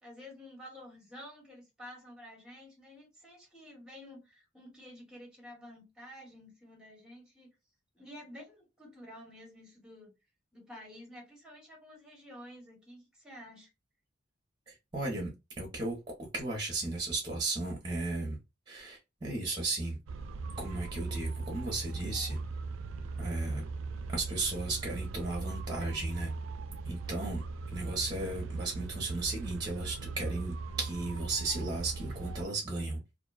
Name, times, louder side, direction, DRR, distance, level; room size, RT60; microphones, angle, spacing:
voice 1, 0.0-7.6 7.9-10.1 10.5-13.7, left 1 dB, 5° right, 1.0 m, -50 dB
voice 2, 14.7-15.3 15.6-18.4 18.7-20.0 20.6-22.4 23.2-23.6 24.1-26.3 26.8-27.4 27.7-33.0, right 2 dB, 20° right, 0.7 m, -35 dB
sound 1, 20.1-32.5, right 4 dB, 70° right, 0.3 m, -39 dB
2.5 x 2.1 x 2.3 m
head